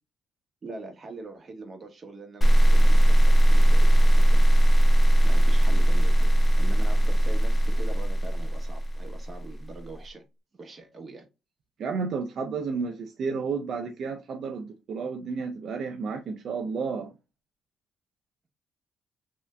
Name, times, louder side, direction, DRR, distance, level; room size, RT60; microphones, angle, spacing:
voice 1, 0.6-4.5 5.2-10.2 10.5-11.3, right 3 dB, 35° right, 1.0 m, -43 dB
sound 1, 2.4-9.5, right 1 dB, 30° left, 0.5 m, -19 dB
voice 2, 11.8-17.1, right 5 dB, 60° right, 0.5 m, -32 dB
3.2 x 2.8 x 2.3 m
cardioid pair, 90°, 0 cm